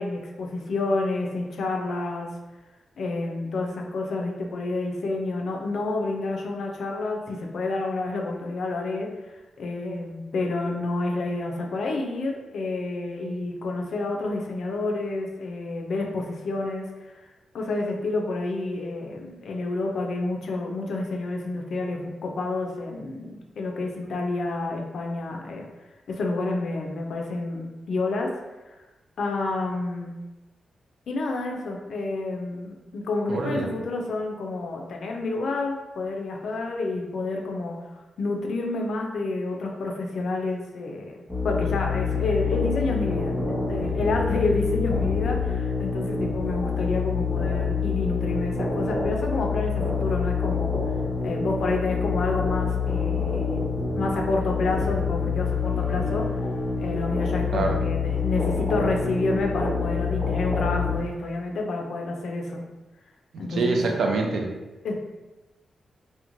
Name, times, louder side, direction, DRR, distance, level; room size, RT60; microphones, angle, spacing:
voice 1, 0.0-2.3 3.0-16.9 17.5-25.7 26.1-28.3 29.2-30.2 31.1-41.2 41.4-50.8 51.2-53.7 53.9-56.3 56.8-62.6 63.4-63.8 64.8-64.9, left 2 dB, 70° left, 1 dB, 0.4 m, -29 dB
voice 2, 33.3-33.7 57.5-57.8 63.5-64.5, right 3 dB, 75° right, 1 dB, 0.4 m, -25 dB
sound 1, 41.3-61.0, left 5 dB, ahead, 0.4 m, -27 dB
2.9 x 2.1 x 2.5 m, 1.1 s
wide cardioid pair, 140°, 0 cm